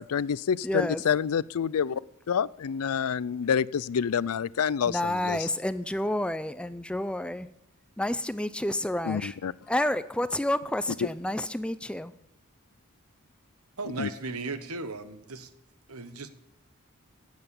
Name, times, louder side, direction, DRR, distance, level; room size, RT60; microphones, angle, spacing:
voice 1, 0.0-2.0 2.3-5.0 5.2-5.4 9.1-9.5 14.0-14.1, left 7 dB, 85° left, 21 dB, 0.4 m, -27 dB
voice 2, 0.6-1.0 4.8-7.5 8.0-9.4 9.7-12.1, left 1 dB, 5° left, 13 dB, 0.4 m, -30 dB
voice 3, 13.8-15.5 15.9-16.3, right 3 dB, 85° right, 10 dB, 1.3 m, -36 dB
16.5 x 7.9 x 7.1 m, 0.86 s
head